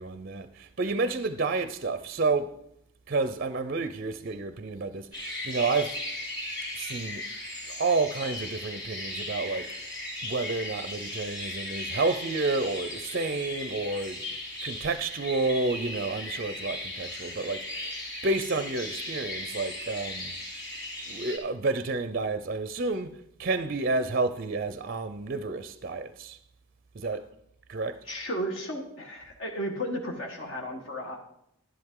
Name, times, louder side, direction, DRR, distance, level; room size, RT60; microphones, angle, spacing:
voice 1, 0.0-2.5 3.1-6.0 6.8-7.2 7.7-9.7 10.2-14.2 14.6-18.0 18.2-20.3 21.1-23.1 23.4-26.4 27.0-27.2 27.7-28.0, right 3 dB, 40° right, 0.5 m, -30 dB
sound 1, 5.1-21.4, left 1 dB, 20° left, 2.6 m, -37 dB
voice 2, 28.0-31.2, equal, 55° left, 1.4 m, -34 dB
11.5 x 11.0 x 3.7 m
head